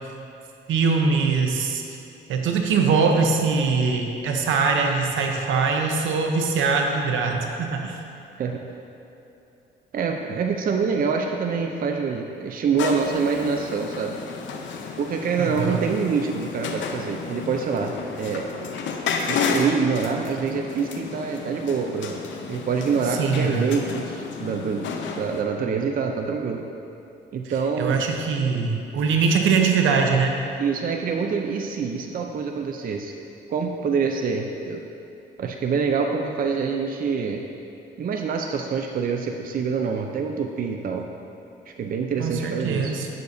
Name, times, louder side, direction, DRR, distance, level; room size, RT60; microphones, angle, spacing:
voice 1, 0.7-1.8 2.3-8.0 15.4-15.8 23.2-23.7 27.8-30.4 42.2-43.1, right 5 dB, 80° right, 3 dB, 0.8 m, -22 dB
voice 2, 9.9-14.2 15.0-18.5 19.3-22.2 22.5-26.6 27.3-28.0 30.6-33.1 33.5-34.8 35.4-37.4 38.0-41.1 41.7-42.9, right 5 dB, 45° right, 3 dB, 0.5 m, -26 dB
sound 1, 12.8-25.4, left 5 dB, 70° left, 0.7 m, -32 dB
9.4 x 6.6 x 2.7 m, 2.9 s
cardioid pair, 90°, 20 cm